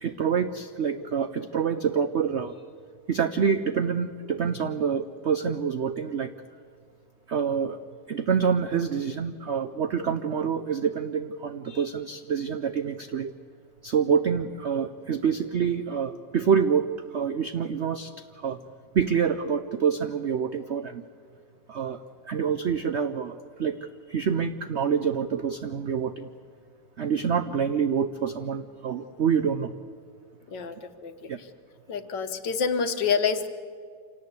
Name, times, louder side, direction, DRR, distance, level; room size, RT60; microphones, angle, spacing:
voice 1, 0.0-2.5 3.1-6.3 7.3-7.8 8.1-13.3 13.8-18.6 18.9-21.0 21.7-22.0 22.2-23.8 24.1-26.3 27.0-29.7 31.3-31.4, right 7 dB, 70° right, 10 dB, 0.6 m, -26 dB
voice 2, 30.5-31.5 31.9-33.5, left 6 dB, 70° left, 9 dB, 1.8 m, -28 dB
26.5 x 18.0 x 8.3 m, 2.1 s
omnidirectional pair, 2.1 m